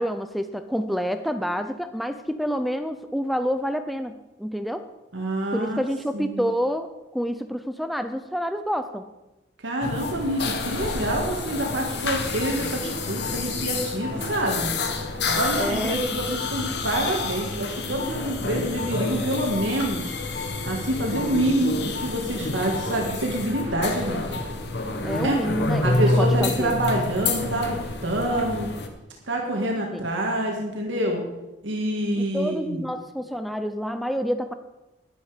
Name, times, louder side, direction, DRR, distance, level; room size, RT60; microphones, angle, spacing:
voice 1, 0.0-4.1 4.4-4.9 5.5-9.1 15.6-16.0 25.0-26.8 29.9-30.1 32.2-34.5, equal, ahead, 9 dB, 0.5 m, -28 dB
voice 2, 5.1-5.8 6.1-6.5 9.6-14.7 15.3-20.2 20.7-24.4 25.2-25.4 25.8-28.7 29.3-31.2 31.6-32.8, right 1 dB, 85° right, 0 dB, 1.9 m, -26 dB
sound 1, 9.8-28.9, left 3 dB, 60° left, 1.3 m, -28 dB
11.0 x 11.0 x 5.1 m, 1.0 s
head